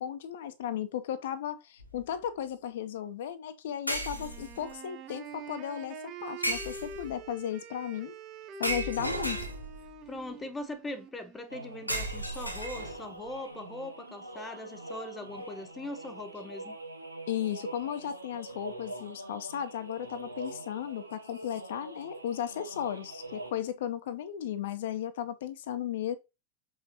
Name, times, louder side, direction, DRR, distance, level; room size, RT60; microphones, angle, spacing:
voice 1, 0.0-6.0 6.2-8.1 8.6-9.5 17.3-26.2, left 10 dB, 55° left, 0.8 m, -35 dB
sound 1, 1.8-2.0 3.9-4.7 6.4-7.2 8.6-9.9 11.9-13.2, right 1 dB, 85° left, 1.7 m, -34 dB
Wind instrument woodwind instrument, 4.1-12.0, right 4 dB, 35° right, 1.4 m, -45 dB
voice 2, 10.0-16.8, left 1 dB, 15° left, 1.1 m, -41 dB
sound 2, 11.5-23.5, right 1 dB, 85° right, 1.2 m, -44 dB
6.8 x 5.7 x 2.9 m
figure-of-eight pair, 90°, 0 cm